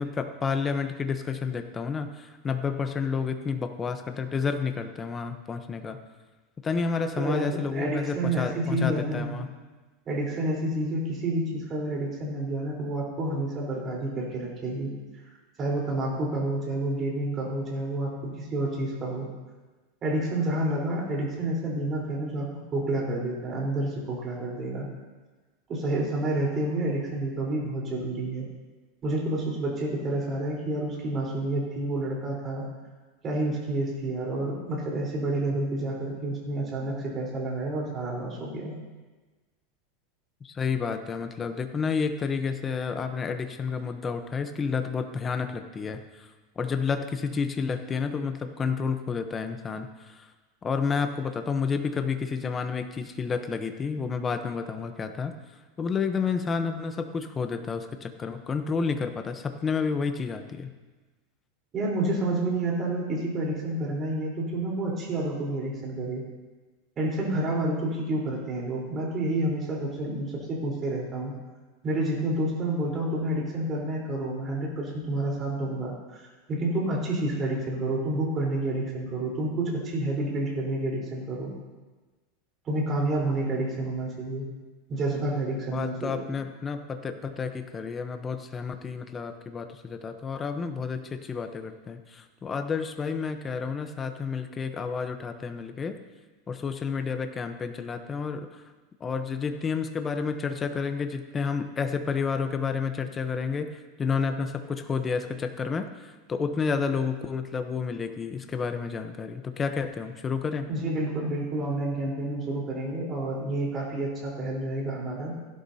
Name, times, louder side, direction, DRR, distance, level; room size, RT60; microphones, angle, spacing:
voice 1, 0.0-6.0 6.6-9.5 40.4-46.3 46.6-50.2 50.6-55.3 55.8-60.7 85.7-96.0 96.5-98.5 99.0-110.7, left 5 dB, 20° left, 7 dB, 0.9 m, -30 dB
voice 2, 7.2-9.3 10.1-14.9 15.6-19.3 20.0-24.9 25.7-28.5 29.0-32.6 33.2-38.7 61.7-66.2 67.0-71.3 71.8-81.5 82.6-84.4 84.9-86.3 110.7-115.3, right 1 dB, 30° right, -3 dB, 4.0 m, -29 dB
16.0 x 11.5 x 2.8 m, 1.3 s
supercardioid pair, 140°, 0 cm